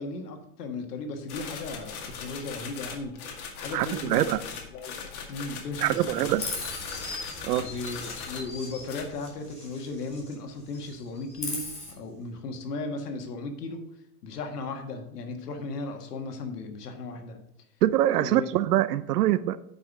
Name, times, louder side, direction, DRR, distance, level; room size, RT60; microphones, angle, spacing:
voice 1, 0.0-3.1 3.5-4.4 4.7-6.3 7.6-13.8 14.2-17.4 18.2-18.5, left 3 dB, 85° left, 1.7 m, -36 dB
sound 1, 1.3-8.6 8.8-9.1, left 6 dB, 65° left, 2.1 m, -39 dB
voice 2, 3.7-4.4 5.8-6.5 7.4-7.7 17.8-19.6, right 13 dB, 80° right, 0.6 m, -24 dB
Chirp tweet, 6.4-10.4 10.7-11.9, left 2 dB, 15° left, 2.4 m, -39 dB
9.1 x 5.7 x 4.8 m
supercardioid pair, 140°, 46 cm